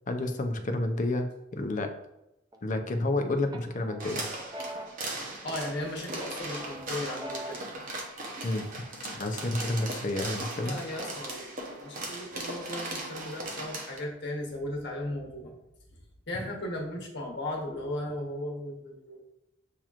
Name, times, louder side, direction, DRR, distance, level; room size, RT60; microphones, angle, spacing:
voice 1, 0.1-1.9 2.6-4.2 8.4-8.9 9.2-10.7 16.3-16.5, left 2 dB, 40° left, 6 dB, 0.5 m, -30 dB
sound 1, 2.5-3.1 3.5-5.8 6.2-7.8, right 1 dB, 20° right, 0.5 m, -43 dB
sound 2, 4.0-14.0, right 2 dB, 45° right, 0.8 m, -38 dB
voice 2, 5.4-7.6 10.6-15.5 16.3-19.2, left 1 dB, 65° left, -1 dB, 1.2 m, -36 dB
7.3 x 2.9 x 2.4 m, 0.88 s
head